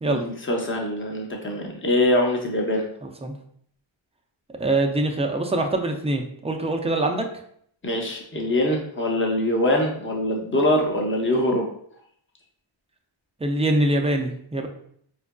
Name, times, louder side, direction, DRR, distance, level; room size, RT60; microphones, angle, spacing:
voice 1, 0.1-2.9 7.8-11.7, left 1 dB, 25° left, 0 dB, 0.7 m, -23 dB
voice 2, 4.6-7.2 13.4-14.7, right 2 dB, 15° right, 3 dB, 0.4 m, -23 dB
4.5 x 2.5 x 2.2 m, 0.66 s
wide cardioid pair, 80°, 48 cm